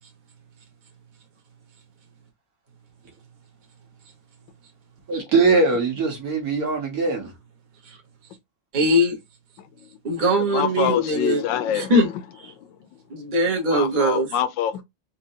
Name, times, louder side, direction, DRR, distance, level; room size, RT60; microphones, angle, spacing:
voice 1, 5.1-7.3, right 3 dB, 55° right, 1.7 m, -21 dB
voice 2, 8.7-9.2 10.0-11.4 11.7-12.1 12.4-12.5 13.1-14.3, equal, 30° right, 1.1 m, -21 dB
voice 3, 10.4-12.0 13.7-14.8, left 10 dB, 85° left, 1.3 m, -25 dB
4.3 x 2.7 x 2.7 m
omnidirectional pair, 2.0 m